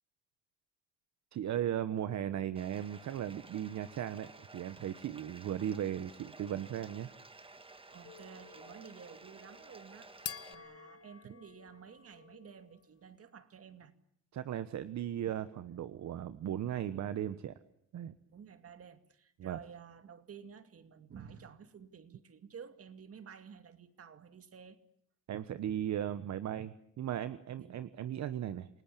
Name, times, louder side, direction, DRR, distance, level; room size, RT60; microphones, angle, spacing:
voice 1, 1.3-7.1 14.3-17.5 17.9-18.1 19.4-19.6 25.3-28.7, right 10 dB, 65° right, 1.2 m, -37 dB
Bathtub (filling or washing), 2.6-10.6, right 3 dB, 20° right, 1.8 m, -54 dB
voice 2, 7.9-10.1 10.5-13.9 18.3-24.8 27.6-27.9, right 7 dB, 50° right, 2.4 m, -52 dB
sound 1, 8.0-12.9, left 8 dB, 50° left, 1.7 m, -50 dB
29.0 x 18.5 x 8.6 m
cardioid pair, 90°, 30 cm